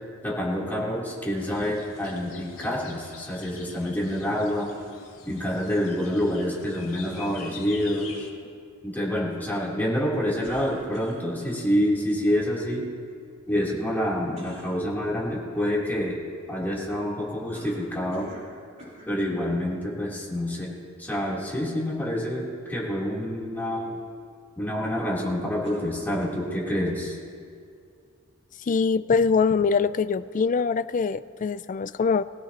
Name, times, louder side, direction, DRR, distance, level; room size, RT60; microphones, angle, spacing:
voice 1, 0.2-4.7 5.2-8.3 8.8-12.9 13.5-16.2 16.5-18.3 19.1-20.7 21.0-24.0 24.6-27.2, equal, 10° left, -6 dB, 3.4 m, -27 dB
sound 1, 1.3-8.3, left 5 dB, 75° left, 2.4 m, -45 dB
sound 2, 10.4-11.6 14.3-14.8 17.5-18.5 18.8-19.2 20.0-20.1 25.6-26.5, right 1 dB, 35° right, 4.1 m, -45 dB
voice 2, 28.6-32.2, left 5 dB, 40° left, 15 dB, 0.4 m, -23 dB
22.0 x 16.0 x 3.0 m, 2.3 s
head